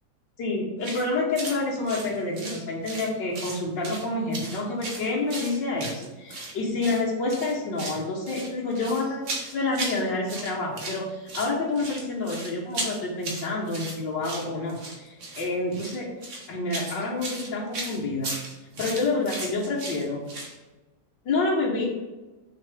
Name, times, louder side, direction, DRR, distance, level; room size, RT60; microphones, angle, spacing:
voice 1, 0.4-16.1 16.5-18.4 18.8-20.3 21.3-21.9, left 3 dB, 85° left, -4 dB, 1.9 m, -28 dB
sound 1, 0.8-1.1 1.4-1.6 1.9-3.1 3.3-4.1 4.3-6.5 6.8-7.0 7.3-8.0 8.3-10.0 10.3-11.0 11.3-20.5, right 2 dB, 45° right, 1.5 m, -36 dB
6.5 x 6.3 x 3.6 m, 1.2 s
omnidirectional pair, 1.9 m